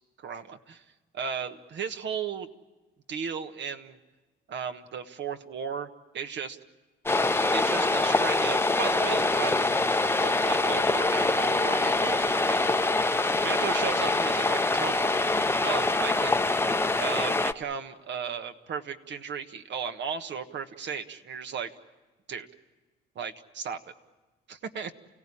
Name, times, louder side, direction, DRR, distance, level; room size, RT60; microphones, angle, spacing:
voice 1, 0.2-0.8 1.1-2.5 3.1-4.0 4.5-5.9 6.1-6.6 7.5-9.8 10.2-12.7 13.4-15.2 15.6-16.6 17.0-21.7 22.3-22.5 23.1-23.8 24.5-24.9, right 6 dB, 65° right, 7 dB, 1.5 m, -35 dB
sound 1, 7.1-17.5, left 2 dB, 10° left, 0.8 m, -25 dB
29.5 x 16.5 x 10.0 m, 1.2 s
cardioid pair, 90°, 20 cm